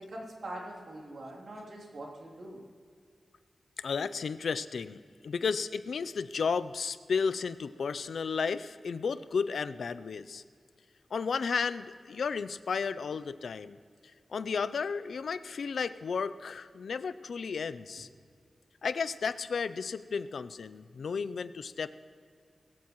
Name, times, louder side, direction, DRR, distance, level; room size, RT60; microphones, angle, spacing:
voice 1, 0.0-2.6, right 1 dB, 70° right, -3 dB, 3.0 m, -43 dB
voice 2, 3.8-10.4 11.1-13.8 14.3-18.1 18.8-21.9, left 5 dB, 85° left, 14 dB, 0.4 m, -33 dB
20.5 x 15.5 x 3.1 m, 2.1 s
wide cardioid pair, 155°, 0 cm